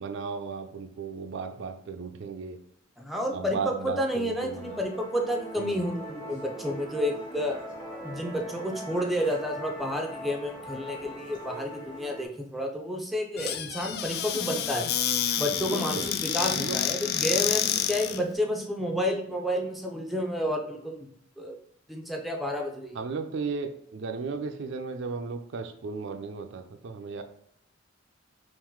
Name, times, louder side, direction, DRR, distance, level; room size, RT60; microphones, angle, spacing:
voice 1, 0.0-2.6 3.3-4.8 5.6-5.8 15.6-16.0 16.5-16.8 22.9-27.2, right 5 dB, 65° right, 6 dB, 0.4 m, -35 dB
voice 2, 3.0-7.6 8.0-14.9 15.4-21.1 21.4-21.5 21.9-23.0, equal, ahead, 1 dB, 0.5 m, -30 dB
Musical instrument, 4.4-12.3, equal, 20° left, 1.1 m, -41 dB
Squeak / Cupboard open or close, 13.4-18.2, left 10 dB, 55° left, 0.3 m, -29 dB
3.7 x 2.5 x 4.5 m, 0.69 s
head